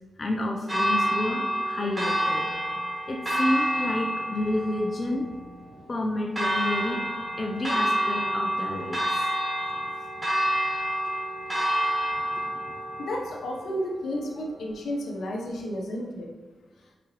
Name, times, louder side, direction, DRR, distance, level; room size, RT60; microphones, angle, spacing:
voice 1, 0.2-2.5 3.1-5.3 5.9-7.0 7.4-9.3, left 1 dB, 45° left, 1 dB, 0.7 m, -30 dB
Church bell, 0.7-14.7, right 1 dB, 20° right, 2.0 m, -29 dB
voice 2, 13.0-16.3, equal, 75° left, 0 dB, 0.9 m, -32 dB
5.9 x 5.1 x 3.1 m, 1.2 s
supercardioid pair, 45°, 0 cm